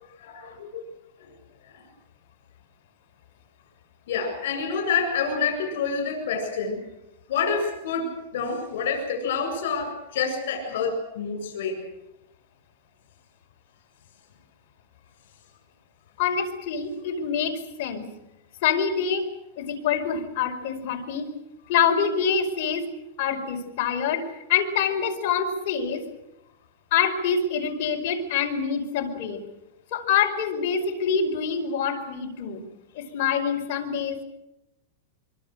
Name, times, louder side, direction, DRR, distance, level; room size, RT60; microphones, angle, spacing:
voice 1, 0.2-0.8 4.1-6.8 7.3-11.8, left 5 dB, 65° left, 5 dB, 7.6 m, -27 dB
voice 2, 16.2-18.1 18.6-19.2 19.6-21.3 21.7-22.9 23.2-26.0 26.9-29.4 29.9-32.6 32.9-34.2, left 7 dB, 40° left, 1 dB, 5.1 m, -26 dB
25.0 x 25.0 x 6.7 m, 0.92 s
supercardioid pair, 170°, 0 cm